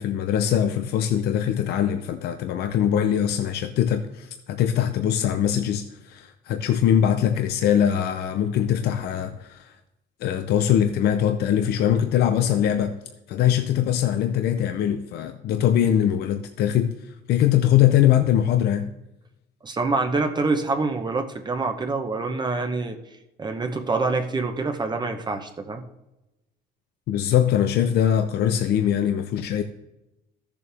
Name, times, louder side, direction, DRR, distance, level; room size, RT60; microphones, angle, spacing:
voice 1, 0.0-9.8 10.2-13.0 13.3-18.9 27.1-29.6, left 10 dB, 70° left, 0.7 m, -22 dB
voice 2, 19.6-23.0 23.4-25.8, right 3 dB, 25° right, 1.0 m, -26 dB
13.5 x 7.0 x 3.5 m
cardioid pair, 110°, 17 cm